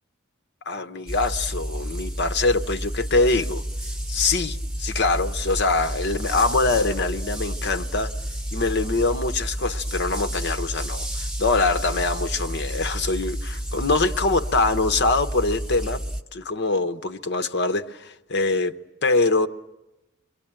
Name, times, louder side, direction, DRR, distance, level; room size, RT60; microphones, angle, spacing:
voice 1, 0.7-3.6 4.1-8.1 8.5-16.0 16.3-18.8 19.0-19.5, left 3 dB, 55° left, 0.9 m, -24 dB
sound 1, 1.1-16.2, equal, 5° right, 1.2 m, -30 dB
27.5 x 23.0 x 8.8 m
head